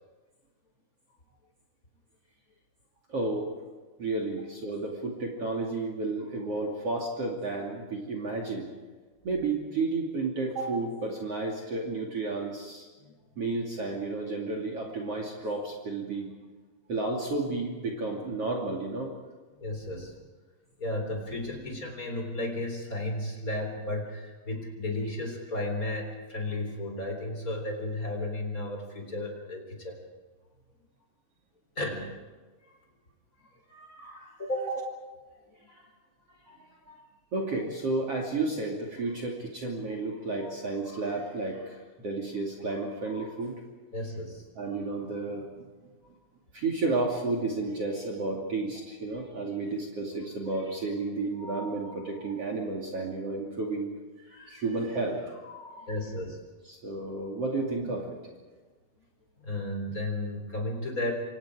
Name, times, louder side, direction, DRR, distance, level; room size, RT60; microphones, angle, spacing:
voice 1, 3.1-3.5 4.0-8.7 9.2-12.9 13.4-16.3 16.9-19.1 33.7-34.3 34.7-34.8 35.6-35.9 36.5-36.6 36.8-37.0 37.3-43.6 44.6-45.7 46.5-55.9 56.7-58.3, right 3 dB, 40° right, 1 dB, 3.3 m, -32 dB
voice 2, 19.6-20.1 20.8-30.0 31.8-32.3 34.4-34.7 43.9-44.4 55.9-56.4 59.4-61.1, left 1 dB, 20° left, 2 dB, 3.9 m, -33 dB
28.0 x 26.0 x 4.9 m, 1.3 s
omnidirectional pair, 4.6 m